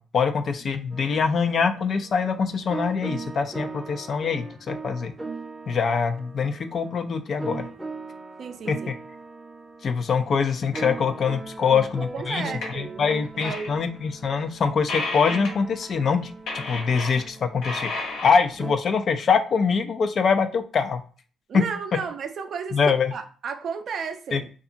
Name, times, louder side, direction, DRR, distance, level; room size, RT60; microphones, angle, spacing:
voice 1, 0.0-5.1 5.7-7.7 8.7-8.9 9.8-12.4 12.7-17.9 18.2-21.0 21.5-21.6 22.7-23.1 24.3-24.4, left 5 dB, 55° left, 0.3 m, -24 dB
sound 1, 0.9-18.7, right 3 dB, 15° right, 0.6 m, -39 dB
voice 2, 8.4-8.9 11.7-11.9 12.1-13.8 21.5-24.5, right 6 dB, 60° right, 0.4 m, -33 dB
sound 2, 10.8-10.9 12.6-12.8 13.2-13.7 14.0-14.1 14.5-14.6 14.9-15.6 15.8-16.1 16.5-17.4 17.6-18.6, left 3 dB, 80° left, 0.7 m, -32 dB
2.7 x 2.3 x 2.5 m
cardioid pair, 90°, 0 cm